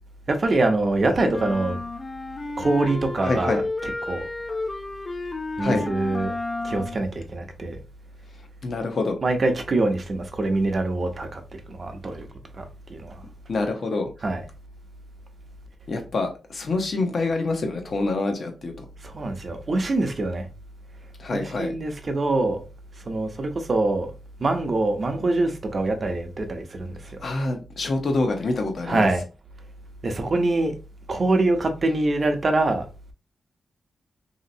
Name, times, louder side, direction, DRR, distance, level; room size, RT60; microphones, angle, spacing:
voice 1, 0.3-1.8 2.6-4.2 5.6-6.3 6.6-7.8 9.2-12.3 12.6-12.7 12.9-13.2 14.2-14.4 19.0-20.5 21.3-22.6 23.1-24.1 24.4-27.0 28.8-29.2 30.0-30.7 31.1-32.9, right 2 dB, 45° right, 0.7 m, -24 dB
sound 1, 1.3-7.0, left 2 dB, 25° left, 0.4 m, -31 dB
voice 2, 3.2-3.7 5.6-5.8 8.6-9.2 13.5-14.1 15.9-18.8 21.2-21.7 27.2-29.1, left 3 dB, 60° left, 0.8 m, -26 dB
3.1 x 2.8 x 2.7 m
cardioid pair, 90°, 0 cm